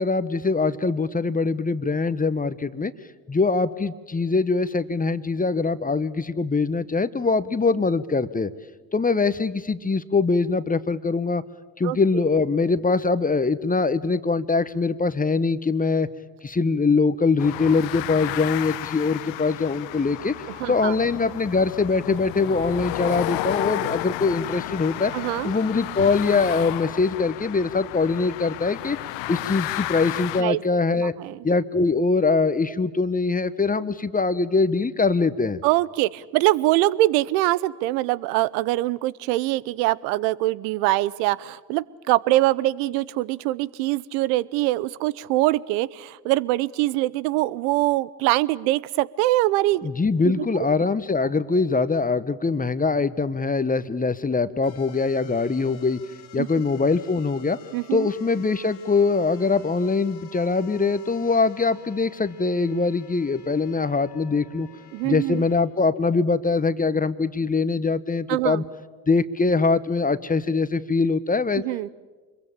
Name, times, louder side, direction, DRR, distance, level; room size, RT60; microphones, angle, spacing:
voice 1, 0.0-2.9 3.3-8.5 8.9-11.4 11.8-16.1 16.4-25.1 25.4-29.0 29.3-31.1 31.4-35.6 49.8-56.0 56.3-57.6 57.9-64.7 65.0-68.6 69.1-71.6, left 4 dB, 15° left, 14 dB, 1.1 m, -23 dB
voice 2, 11.8-12.2 20.6-20.9 25.1-25.5 30.4-30.6 31.2-31.4 35.6-49.9 50.2-50.4 56.3-56.5 57.7-58.1 64.9-65.4 68.3-68.6 71.6-71.9, right 17 dB, 70° right, 21 dB, 0.9 m, -23 dB
sound 1, 17.4-30.4, left 16 dB, 60° left, 1.0 m, -32 dB
sound 2, 54.6-65.6, left 9 dB, 85° left, 2.5 m, -50 dB
26.0 x 22.5 x 8.8 m, 1.3 s
hypercardioid pair, 60°, 50 cm